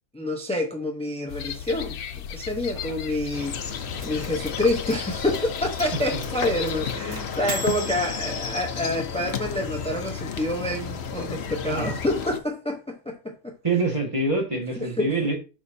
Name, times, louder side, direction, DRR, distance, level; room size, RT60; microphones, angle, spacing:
voice 1, 0.1-2.0 2.3-13.5 14.8-15.1, left 1 dB, 5° left, 0.5 m, -28 dB
sound 1, 1.3-7.0, left 8 dB, 80° left, 1.2 m, -36 dB
sound 2, 3.3-12.4, left 6 dB, 50° left, 1.0 m, -33 dB
sound 3, 4.0-9.3, right 1 dB, 50° right, 2.8 m, -39 dB
voice 2, 13.6-15.4, right 3 dB, 20° right, 1.7 m, -26 dB
11.5 x 5.0 x 2.8 m
omnidirectional pair, 1.6 m